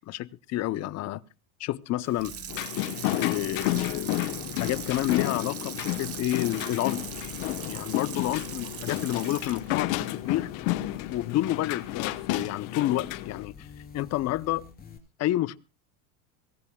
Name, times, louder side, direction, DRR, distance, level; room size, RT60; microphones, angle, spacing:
voice 1, 0.1-1.2 1.6-2.3 3.2-7.0 7.7-10.5 11.1-13.7 13.9-14.6 15.2-15.6, left 15 dB, 40° left, 0.7 m, -29 dB
Water tap faucet / Sink (filling or washing), 2.0-11.2 11.6-11.7, right 10 dB, 35° right, 1.1 m, -41 dB
sound 1, 2.2-15.0, left 6 dB, 20° left, 3.2 m, -48 dB
sound 2, 2.5-13.5, left 16 dB, 60° left, 1.1 m, -31 dB
24.5 x 17.0 x 2.3 m
supercardioid pair, 120°, 41 cm